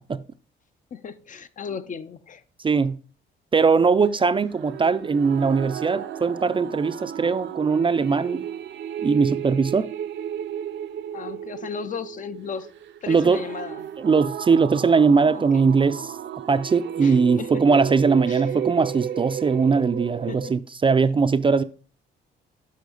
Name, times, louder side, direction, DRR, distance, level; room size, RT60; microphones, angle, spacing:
voice 1, 0.9-2.4 11.1-12.7 13.0-13.9 15.3-15.7 17.0-17.6 18.3-18.5 20.3-20.6, left 6 dB, 40° left, 0.5 m, -35 dB
voice 2, 2.6-3.0 3.5-8.4 9.0-9.9 13.1-13.4 14.0-16.1 16.5-21.6, right 5 dB, 25° right, 0.4 m, -20 dB
sound 1, 4.5-20.5, right 10 dB, 65° right, 0.6 m, -34 dB
8.3 x 5.7 x 3.9 m
cardioid pair, 90°, 20 cm